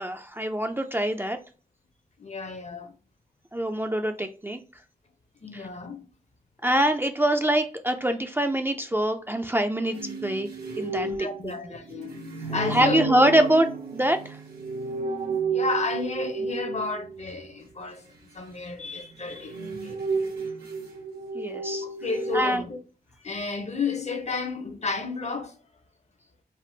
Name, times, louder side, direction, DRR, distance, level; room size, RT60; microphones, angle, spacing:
voice 1, 0.0-1.4 3.5-4.6 5.5-5.7 6.6-10.5 10.8-11.1 11.4-11.5 12.5-14.4 21.3-21.9 22.3-22.6, right 1 dB, 15° right, 0.3 m, -24 dB
voice 2, 2.2-2.9 5.4-6.1 11.0-12.2 12.5-13.1 15.5-18.0 18.3-20.0 21.8-22.8 23.2-25.6, left 4 dB, 45° left, 0.6 m, -32 dB
sound 1, 9.9-17.2 19.1-22.4, right 4 dB, 80° right, 0.9 m, -32 dB
3.4 x 2.0 x 2.7 m
cardioid pair, 55°, 16 cm